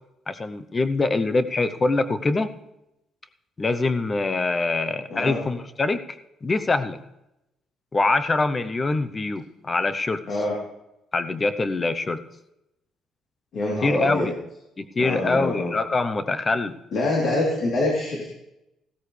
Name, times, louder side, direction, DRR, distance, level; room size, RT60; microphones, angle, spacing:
voice 1, 0.3-2.5 3.6-7.0 7.9-10.2 11.1-12.2 13.8-14.3 14.8-16.8, left 3 dB, 20° left, 11 dB, 0.8 m, -24 dB
voice 2, 5.1-5.4 10.3-10.5 13.5-14.3 15.0-15.8 16.9-18.2, left 2 dB, 50° left, -3 dB, 3.3 m, -25 dB
16.0 x 13.5 x 3.3 m, 0.88 s
cardioid pair, 155°, 0 cm